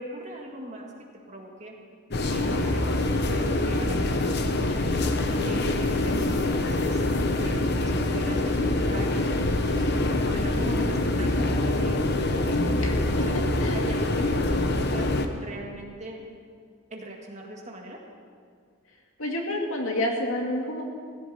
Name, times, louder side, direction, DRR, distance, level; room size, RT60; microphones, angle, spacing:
voice 1, 0.0-1.7 2.3-4.3 4.6-5.0 5.2-7.0 7.4-12.0 12.5-13.3 13.7-16.2 16.9-18.0, right 1 dB, 35° right, 0 dB, 2.0 m, -40 dB
sound 1, 2.1-15.3, left 2 dB, 50° left, 0.9 m, -25 dB
voice 2, 12.8-13.3 13.6-13.8 19.2-20.8, left 1 dB, 75° left, 0 dB, 2.4 m, -29 dB
16.5 x 15.5 x 4.4 m, 2.1 s
head